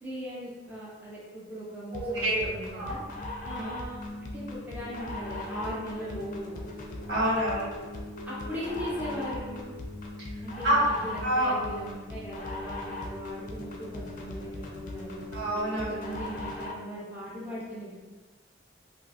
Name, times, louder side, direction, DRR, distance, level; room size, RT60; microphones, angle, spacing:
voice 1, 0.0-3.0 3.4-6.5 8.3-9.7 10.4-15.2 15.8-18.0, equal, 10° right, -8 dB, 0.6 m, -39 dB
sound 1, 1.9-16.9, left 1 dB, 45° left, 0.4 m, -39 dB
voice 2, 2.0-2.5 2.7-2.9 3.5-3.7 7.1-7.7 10.6-10.9 11.2-11.6 15.3-15.9, right 1 dB, 65° right, -7 dB, 1.1 m, -27 dB
3.7 x 2.6 x 2.5 m, 1.3 s
head